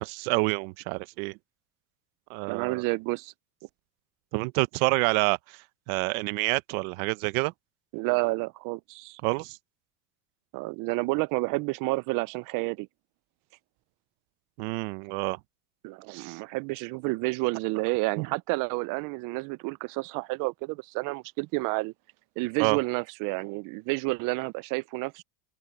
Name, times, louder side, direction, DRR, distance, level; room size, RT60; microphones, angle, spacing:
voice 1, 0.0-1.4 2.3-2.8 4.3-5.6 5.9-7.5 9.2-9.6 14.6-15.4 16.1-16.4 18.2-18.3 22.6-22.8, right 25 dB, 65° right, 1.1 m, -28 dB
voice 2, 2.5-3.3 7.9-9.2 10.5-12.9 15.8-21.9 22.4-25.2, right 26 dB, 50° right, 0.5 m, -30 dB
open air
supercardioid pair, 125°, 44 cm